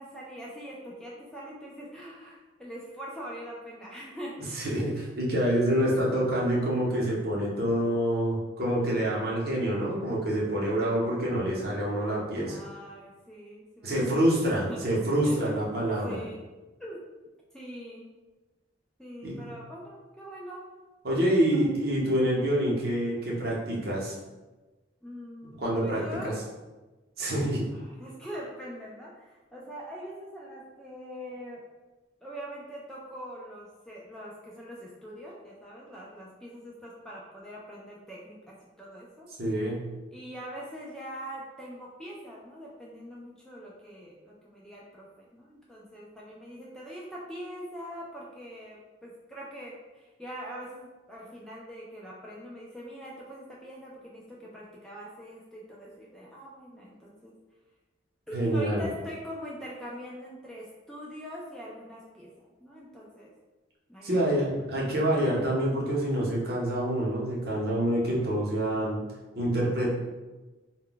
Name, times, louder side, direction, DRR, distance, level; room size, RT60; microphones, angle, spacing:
voice 1, 0.0-4.6 12.4-14.0 14.7-15.4 16.0-16.4 16.8-17.0 17.5-18.1 19.0-20.6 21.5-21.7 25.0-26.4 27.7-31.6 32.2-39.3 40.1-57.3 58.3-62.3 62.6-63.3 63.9-64.4, equal, 5° left, -5 dB, 0.3 m, -43 dB
voice 2, 4.6-12.6 13.8-16.2 19.2-19.4 21.0-24.1 25.6-26.0 27.2-27.7 39.4-39.9 58.3-58.8 64.0-69.1 69.3-69.9, right 1 dB, 55° right, -4 dB, 0.7 m, -27 dB
2.1 x 2.1 x 3.8 m, 1.2 s
head